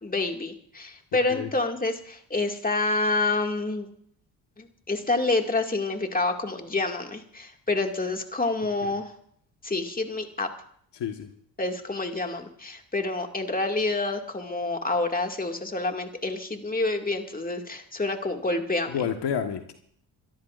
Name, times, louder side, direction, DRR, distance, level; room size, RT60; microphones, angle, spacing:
voice 1, 0.0-3.9 4.6-9.1 9.6-10.5 11.6-19.0, left 2 dB, 20° left, 3 dB, 2.2 m, -28 dB
voice 2, 10.9-11.3 18.9-19.7, left 8 dB, 65° left, 5 dB, 1.5 m, -30 dB
29.0 x 13.5 x 2.6 m, 0.63 s
supercardioid pair, 55°, 45 cm